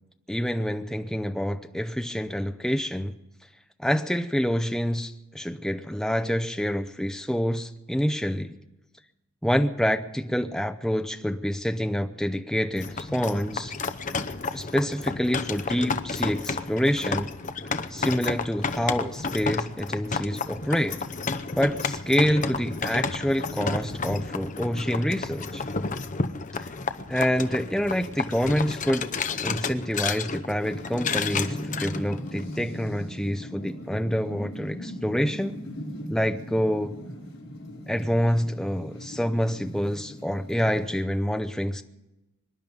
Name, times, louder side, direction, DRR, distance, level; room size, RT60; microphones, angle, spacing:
voice 1, 0.3-3.1 3.8-8.6 9.4-13.7 14.5-17.3 17.9-21.0 21.6-25.6 27.1-29.1 29.4-35.6 36.1-37.0 37.9-41.8, equal, ahead, 0.6 m, -27 dB
sound 1, 12.8-32.6, left 4 dB, 35° left, 0.7 m, -31 dB
sound 2, 30.6-41.0, equal, 65° left, 5.3 m, -39 dB
25.0 x 10.5 x 5.3 m
head